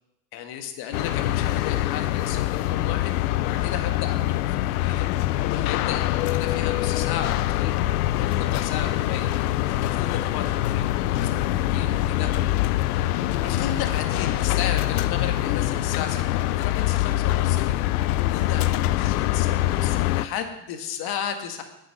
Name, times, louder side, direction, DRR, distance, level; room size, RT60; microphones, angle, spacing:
voice 1, 0.3-9.3 9.8-12.5 13.4-17.8 18.3-21.6, left 8 dB, 50° left, 6 dB, 1.9 m, -34 dB
sound 1, 0.9-20.3, left 14 dB, 65° left, 0.6 m, -24 dB
9.8 x 7.9 x 6.6 m, 0.91 s
hypercardioid pair, 85°, 49 cm